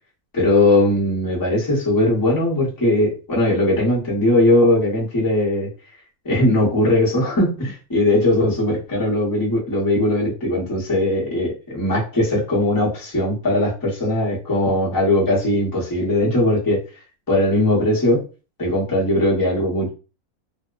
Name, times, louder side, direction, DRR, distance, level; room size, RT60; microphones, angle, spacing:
voice 1, 0.3-5.7 6.2-16.8 17.3-18.2 18.6-19.9, left 1 dB, 20° left, -5 dB, 0.7 m, -19 dB
2.7 x 2.1 x 2.4 m, 0.34 s
omnidirectional pair, 1.6 m